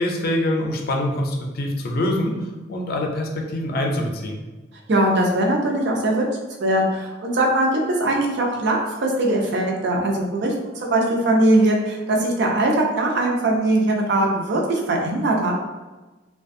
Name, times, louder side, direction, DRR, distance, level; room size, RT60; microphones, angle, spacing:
voice 1, 0.0-2.4 2.7-4.4, left 1 dB, 55° left, 1 dB, 0.4 m, -24 dB
voice 2, 4.9-6.3 6.6-15.5, right 1 dB, 65° right, 0 dB, 0.5 m, -21 dB
2.4 x 2.2 x 2.5 m, 1.2 s
head